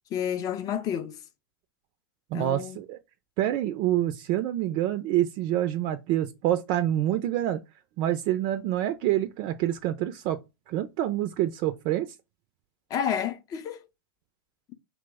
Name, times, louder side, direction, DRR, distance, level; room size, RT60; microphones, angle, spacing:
voice 1, 0.1-1.2 2.3-2.8 12.9-13.8, left 9 dB, 30° left, 0.4 m, -30 dB
voice 2, 2.3-3.0 3.4-7.6 8.0-10.4 10.7-12.1, right 13 dB, 45° right, 0.3 m, -27 dB
2.9 x 2.0 x 3.3 m
hypercardioid pair, 115°, 12 cm